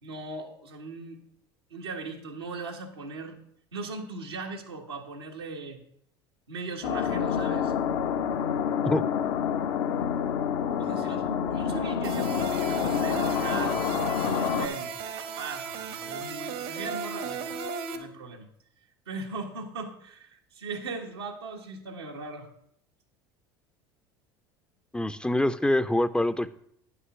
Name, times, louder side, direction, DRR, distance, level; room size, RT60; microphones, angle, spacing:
voice 1, 0.0-1.2 1.7-3.4 3.7-5.8 6.5-7.7 10.8-17.6 17.9-18.5 19.1-22.5, right 3 dB, 90° right, 0 dB, 1.6 m, -39 dB
sound 1, 6.8-14.7, left 8 dB, 70° left, 0.9 m, -28 dB
sound 2, 12.0-18.0, right 5 dB, 70° right, 1.5 m, -35 dB
voice 2, 24.9-26.5, left 1 dB, 5° left, 12 dB, 0.5 m, -25 dB
9.5 x 5.7 x 6.2 m, 0.69 s
hypercardioid pair, 75°, 13 cm